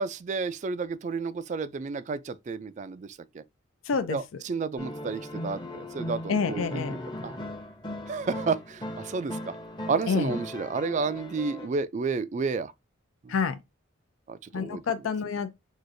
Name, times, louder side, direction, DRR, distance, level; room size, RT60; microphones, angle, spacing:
voice 1, 0.0-3.4 4.1-7.4 8.1-9.5 9.9-12.7 13.2-13.3 14.3-14.8, right 4 dB, 35° right, 0.3 m, -31 dB
voice 2, 3.9-4.2 6.3-7.0 10.1-10.3 13.3-13.6 14.5-15.5, left 5 dB, 85° left, 0.5 m, -28 dB
sound 1, 4.8-11.7, left 1 dB, 20° left, 0.7 m, -38 dB
6.2 x 2.5 x 2.6 m
head